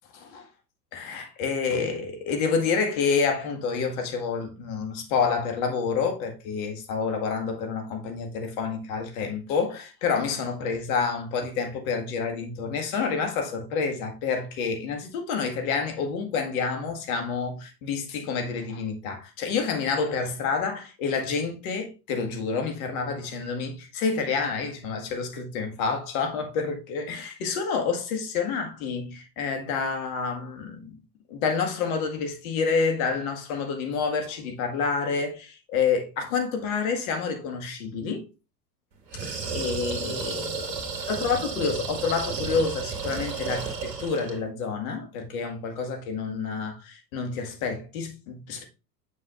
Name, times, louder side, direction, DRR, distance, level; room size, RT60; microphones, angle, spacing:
voice 1, 0.2-0.5 0.9-30.9 31.3-38.3 39.2-40.8 41.1-48.6, left 5 dB, 55° left, 2.0 m, -28 dB
sound 1, 39.1-44.4, right 5 dB, 80° right, 2.1 m, -32 dB
7.4 x 6.3 x 2.5 m
figure-of-eight pair, 85°, 49 cm